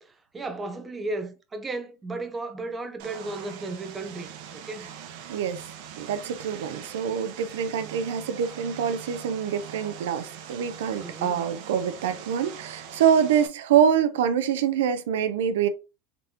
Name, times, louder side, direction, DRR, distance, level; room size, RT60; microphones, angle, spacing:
voice 1, 0.0-4.9 11.0-11.4, right 2 dB, 15° right, 0.7 m, -35 dB
Vehicle, 3.0-13.5, right 8 dB, 65° right, 0.8 m, -42 dB
voice 2, 5.3-5.7 6.0-15.7, right 8 dB, 90° right, 0.5 m, -25 dB
4.0 x 3.4 x 2.8 m
supercardioid pair, 125°, 0 cm